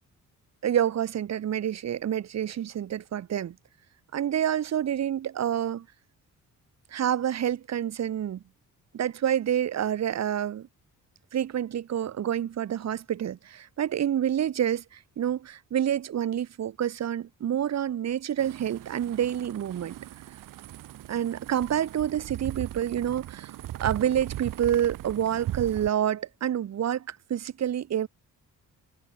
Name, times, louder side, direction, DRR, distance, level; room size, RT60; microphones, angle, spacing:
voice 1, 0.6-3.5 4.1-5.8 6.9-8.4 8.9-10.7 11.3-20.0 21.1-23.5 23.8-28.1, right 10 dB, 55° right, 1.4 m, -28 dB
sound 1, 18.4-25.9, right 14 dB, 80° right, 1.1 m, -39 dB
cardioid pair, 115°, 32 cm